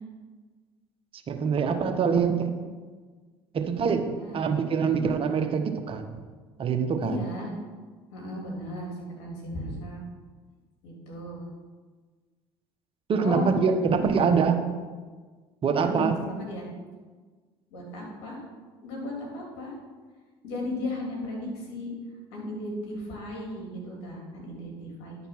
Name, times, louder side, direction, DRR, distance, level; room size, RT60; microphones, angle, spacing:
voice 1, 1.3-2.5 3.5-6.2 6.6-7.2 13.1-14.6 15.6-16.2, right 6 dB, 45° right, 6 dB, 1.0 m, -24 dB
voice 2, 4.2-4.7 7.0-7.5 8.1-10.0 10.8-11.4 13.2-13.5 15.8-16.7 17.7-18.4 18.8-19.7 20.4-21.9 22.3-25.2, left 1 dB, 75° left, -1 dB, 2.5 m, -35 dB
10.5 x 4.3 x 5.7 m, 1.4 s
hypercardioid pair, 70°, 13 cm